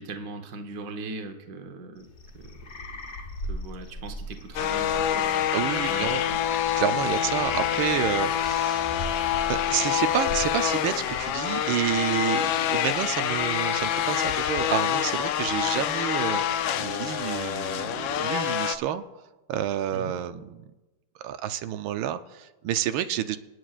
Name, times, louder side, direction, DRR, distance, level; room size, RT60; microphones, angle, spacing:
voice 1, 0.0-2.1 2.3-3.0 3.5-5.5 5.9-6.4 19.9-20.1, right 3 dB, 55° right, 5 dB, 1.4 m, -40 dB
sound 1, 2.0-18.2, left 1 dB, 45° left, 1.1 m, -42 dB
sound 2, 4.6-18.8, left 10 dB, 80° left, 1.4 m, -26 dB
voice 2, 5.5-6.2 6.7-8.9 9.5-16.4 16.8-19.0 19.5-20.7 21.2-23.4, right 11 dB, 85° right, 9 dB, 1.4 m, -29 dB
26.5 x 9.4 x 2.4 m, 1.1 s
omnidirectional pair, 2.1 m